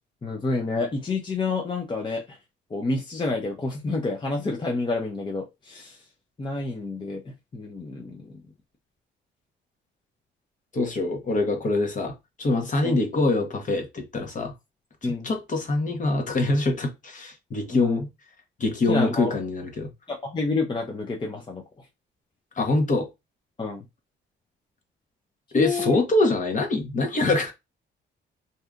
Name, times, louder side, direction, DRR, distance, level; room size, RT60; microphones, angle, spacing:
voice 1, 0.2-2.4 2.7-6.0 6.4-8.3 12.8-12.9 15.0-15.3 17.7-18.0 18.9-19.3 20.1-21.6 23.6-23.8 25.5-26.0, left 3 dB, 25° left, 0.6 m, -29 dB
voice 2, 10.7-14.5 15.0-18.1 18.6-19.9 22.6-23.1 25.5-27.5, left 2 dB, 40° left, 1.0 m, -24 dB
2.7 x 2.4 x 3.5 m
cardioid pair, 90°, 20 cm